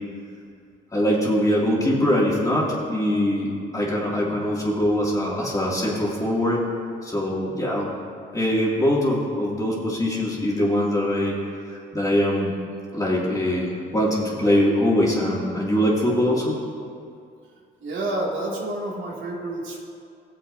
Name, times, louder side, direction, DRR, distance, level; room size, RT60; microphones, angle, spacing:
voice 1, 0.9-6.6 7.0-7.9 8.3-11.4 11.7-12.5 12.9-16.6, equal, 15° left, -5 dB, 2.5 m, -22 dB
voice 2, 17.8-19.8, right 1 dB, 75° right, -4 dB, 2.5 m, -29 dB
17.5 x 7.6 x 2.7 m, 2.4 s
cardioid pair, 90°, 20 cm